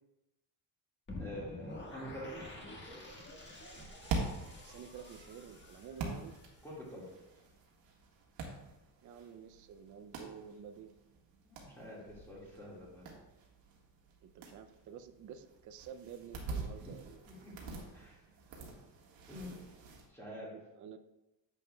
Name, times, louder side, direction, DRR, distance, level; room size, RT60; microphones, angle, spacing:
sound 1, 1.1-7.1, left 1 dB, 25° left, 1.4 m, -48 dB
voice 1, 1.2-2.6 6.6-7.1 11.4-13.2 16.8-16.9 17.2-18.2 19.3-19.6 20.1-20.5, left 1 dB, 5° left, -6 dB, 1.8 m, -47 dB
sound 2, 3.6-20.1, right 3 dB, 75° right, 1.7 m, -45 dB
voice 2, 4.6-6.4 9.0-11.0 14.2-17.2 20.4-21.0, right 7 dB, 45° right, 9 dB, 0.5 m, -50 dB
9.6 x 7.3 x 2.3 m, 0.98 s
cardioid pair, 155°, 45 cm